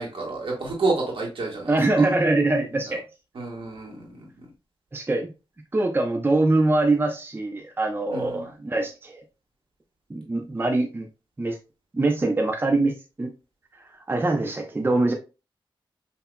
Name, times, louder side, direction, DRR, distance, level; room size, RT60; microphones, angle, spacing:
voice 1, 0.0-2.1 3.4-4.1 8.1-8.4, right 3 dB, 75° right, 1.7 m, -29 dB
voice 2, 1.7-3.0 4.9-5.3 5.7-9.2 10.1-11.1 11.4-11.6 11.9-13.3 14.1-15.1, right 2 dB, 25° right, 0.7 m, -23 dB
5.7 x 2.7 x 2.2 m
wide cardioid pair, 90°, 9 cm